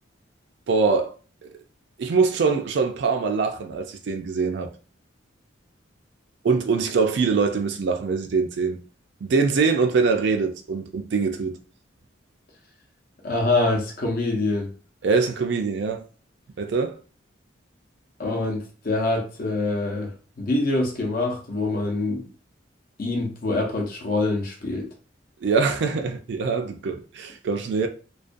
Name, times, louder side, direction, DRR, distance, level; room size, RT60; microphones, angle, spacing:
voice 1, 0.7-1.1 2.0-4.7 6.4-8.8 9.2-11.6 15.0-16.0 16.6-17.0 25.4-27.9, right 4 dB, 60° right, 0.4 m, -23 dB
voice 2, 13.2-14.7 18.2-20.1 20.4-22.2 23.0-24.9, left 2 dB, 50° left, 0.6 m, -25 dB
2.4 x 2.2 x 2.5 m
head